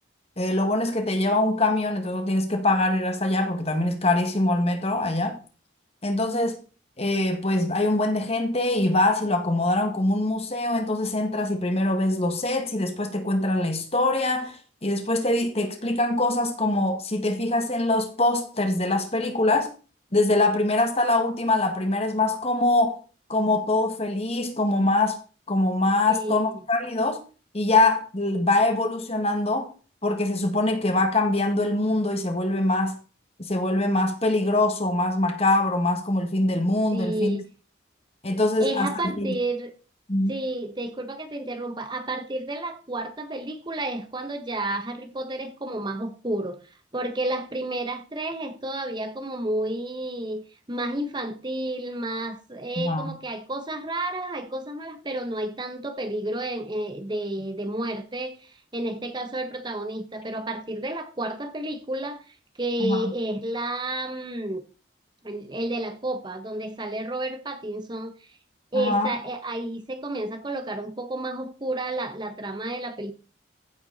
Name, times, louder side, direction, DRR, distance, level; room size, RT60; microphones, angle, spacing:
voice 1, 0.4-5.4 6.0-6.6 7.0-19.7 20.1-23.0 23.3-25.2 25.5-27.2 27.5-29.7 30.0-33.0 33.4-37.4 38.2-39.4 40.1-40.3 52.8-53.1 62.8-63.0 68.7-69.1, left 2 dB, 30° left, 1.9 m, -23 dB
voice 2, 26.1-26.6 36.9-37.4 38.6-39.7 40.3-46.6 46.9-50.4 50.7-62.2 62.6-64.6 65.2-68.3 68.7-73.1, right 1 dB, 25° right, 1.0 m, -31 dB
15.5 x 7.9 x 4.1 m
head